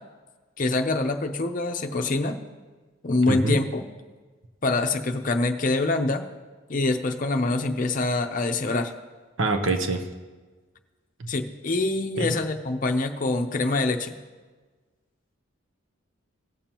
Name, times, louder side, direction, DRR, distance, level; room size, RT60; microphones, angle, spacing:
voice 1, 0.6-2.4 3.0-3.8 4.6-6.3 6.7-8.9 11.3-14.1, left 2 dB, 40° left, 5 dB, 0.6 m, -25 dB
voice 2, 3.3-3.6 9.4-10.0 11.2-11.3 12.2-12.4, right 2 dB, 70° right, 5 dB, 0.9 m, -24 dB
17.0 x 7.1 x 2.9 m, 1.3 s
head